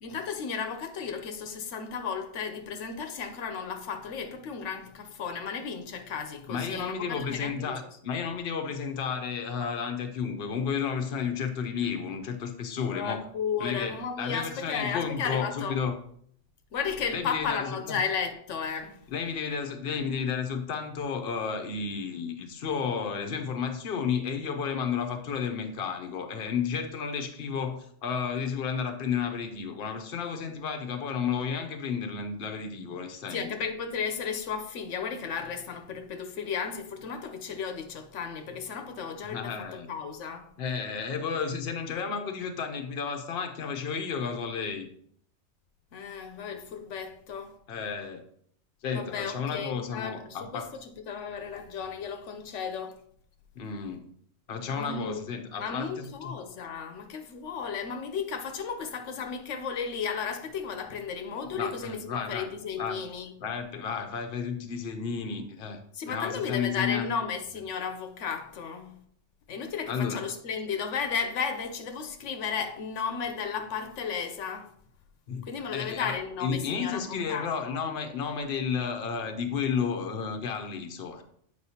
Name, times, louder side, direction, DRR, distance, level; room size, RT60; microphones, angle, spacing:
voice 1, 0.0-7.6 12.9-15.8 16.7-19.0 33.3-39.5 39.9-40.5 45.9-47.5 48.9-50.6 51.1-52.9 54.8-55.3 55.6-63.3 65.9-69.0 69.5-74.7 75.4-77.8, left 6 dB, 90° left, 1.1 m, -34 dB
voice 2, 6.5-13.3 13.6-15.9 17.1-18.0 19.1-33.5 39.2-39.9 40.6-44.9 47.7-48.2 48.8-50.7 53.6-54.0 54.5-56.3 61.5-62.5 62.8-63.0 63.4-67.1 69.9-70.2 75.3-75.5 75.7-81.2, left 6 dB, 60° left, 0.9 m, -32 dB
7.9 x 5.0 x 2.8 m
omnidirectional pair, 1.2 m